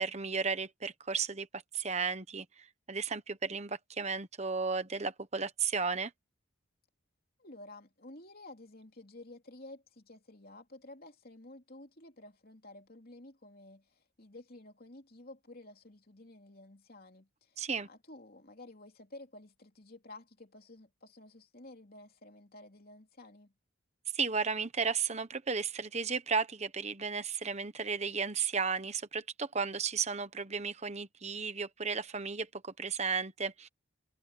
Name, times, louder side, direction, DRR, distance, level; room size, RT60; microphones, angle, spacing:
voice 1, 0.0-6.1 17.6-17.9 24.1-33.7, right 5 dB, 30° right, 1.1 m, -34 dB
voice 2, 7.4-23.5, left 2 dB, 45° left, 3.3 m, -52 dB
head